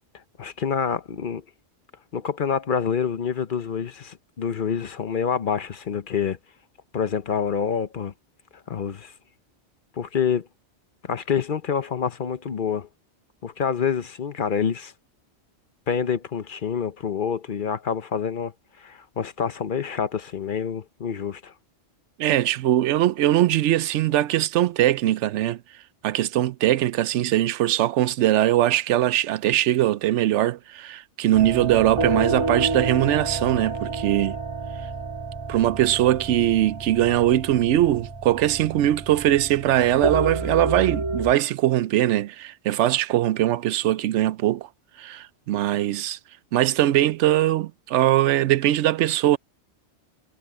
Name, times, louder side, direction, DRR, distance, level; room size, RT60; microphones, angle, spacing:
voice 1, 0.4-1.4 2.1-6.4 6.9-8.1 8.7-9.1 10.0-10.5 11.0-12.9 13.4-14.9 15.9-21.5, left 7 dB, 50° left, 0.9 m, -27 dB
voice 2, 22.2-25.6 26.0-34.4 35.5-44.7 45.0-46.2 46.5-49.4, right 13 dB, 90° right, 0.9 m, -21 dB
sound 1, 31.3-41.3, right 3 dB, 25° right, 2.0 m, -29 dB
omnidirectional pair, 1.2 m